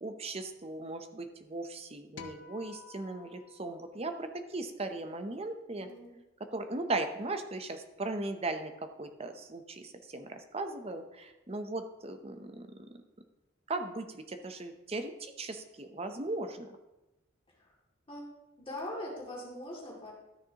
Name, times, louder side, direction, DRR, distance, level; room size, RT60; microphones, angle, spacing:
voice 1, 0.0-5.9 6.5-12.9 13.7-16.7, right 2 dB, 30° right, 7 dB, 0.7 m, -38 dB
sound 1, 2.2-4.6, left 5 dB, 60° left, 0.7 m, -52 dB
voice 2, 5.8-6.2 17.6-17.7 18.1-18.2 18.6-20.1, left 1 dB, 30° left, -3 dB, 2.4 m, -41 dB
13.0 x 6.5 x 2.9 m, 1.0 s
head